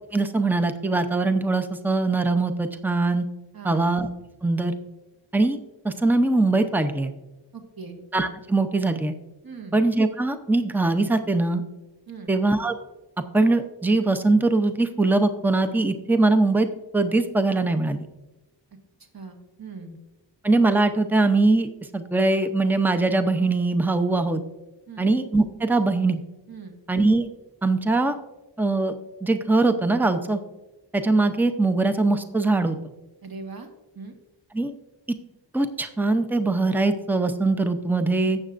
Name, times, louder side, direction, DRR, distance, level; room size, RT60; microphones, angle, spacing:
voice 1, 0.1-3.3 3.6-4.1 4.4-4.8 5.3-5.6 5.8-7.1 8.1-9.1 9.7-11.6 12.3-12.7 13.3-16.7 16.9-18.1 20.4-21.7 21.9-24.4 25.0-26.2 26.9-27.3 27.6-28.2 28.6-28.9 29.2-30.4 30.9-32.8 34.5-34.7 35.5-38.4, right 2 dB, 5° right, 8 dB, 0.6 m, -22 dB
voice 2, 3.5-3.9 7.5-8.0 9.4-9.8 12.1-12.3 19.1-20.0 24.9-25.1 26.5-26.8 33.2-33.7 33.9-34.1, right 4 dB, 50° right, 4 dB, 1.6 m, -40 dB
16.0 x 7.2 x 2.5 m, 1.0 s
wide cardioid pair, 115°, 44 cm